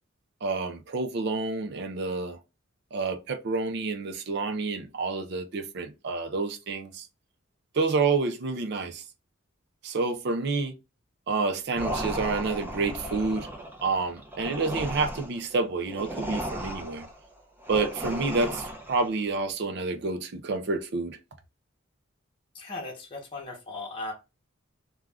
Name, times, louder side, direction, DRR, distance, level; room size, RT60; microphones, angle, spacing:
voice 1, 0.4-2.4 2.9-7.1 7.7-9.0 9.8-10.8 11.3-13.5 13.8-17.1 17.7-21.2, right 3 dB, 55° right, 0.4 m, -29 dB
sound 1, 11.8-19.2, equal, 10° right, 0.7 m, -35 dB
voice 2, 22.5-24.1, left 2 dB, 25° left, 0.9 m, -37 dB
2.5 x 2.3 x 3.2 m
head